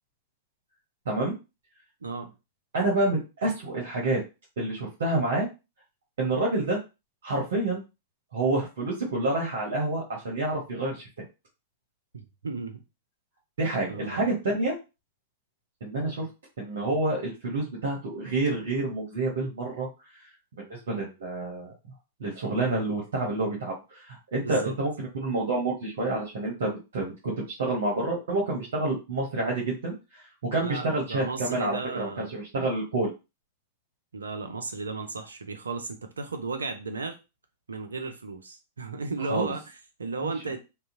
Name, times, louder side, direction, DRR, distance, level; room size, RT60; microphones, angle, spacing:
voice 1, 2.0-2.3 12.1-12.8 13.9-14.3 24.4-24.7 30.6-32.3 34.1-37.2 37.7-40.6, right 3 dB, 85° right, 6 dB, 0.5 m, -34 dB
voice 2, 2.7-4.2 4.6-5.5 6.2-6.8 7.2-7.8 8.3-11.1 13.6-14.7 15.8-16.3 16.6-19.9 20.7-21.7 22.2-27.3 27.6-33.1 39.3-39.5 40.2-40.3, right 2 dB, 70° right, -4 dB, 0.9 m, -28 dB
2.7 x 2.1 x 2.5 m, 0.27 s
hypercardioid pair, 105°, 0 cm